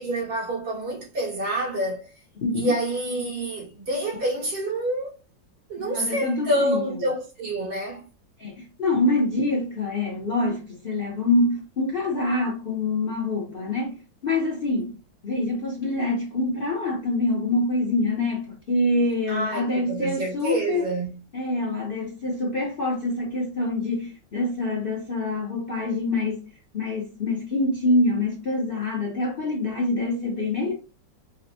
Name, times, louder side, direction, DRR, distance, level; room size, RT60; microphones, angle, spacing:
voice 1, 0.0-2.1 2.5-5.1 5.7-8.1 19.3-21.2, right 1 dB, 90° right, 2.9 m, -27 dB
voice 2, 2.4-2.7 5.8-6.8 8.4-15.0 15.2-20.9 21.3-26.4 26.7-30.7, left 2 dB, 45° left, 0.7 m, -25 dB
5.4 x 2.1 x 2.8 m
omnidirectional pair, 2.0 m